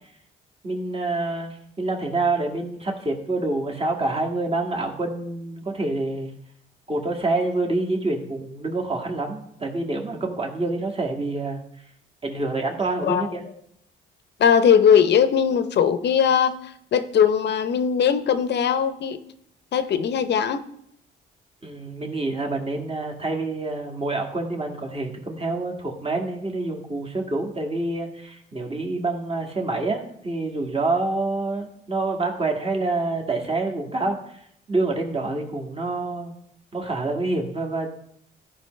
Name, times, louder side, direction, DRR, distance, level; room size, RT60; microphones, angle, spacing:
voice 1, 0.6-6.3 6.9-11.6 12.2-13.4 21.6-34.4 34.7-36.3 36.7-38.0, right 2 dB, 30° right, 1.9 m, -27 dB
voice 2, 14.4-19.2 19.7-20.6, left 7 dB, 60° left, 0.7 m, -20 dB
13.5 x 5.1 x 3.2 m
cardioid pair, 90°, 20 cm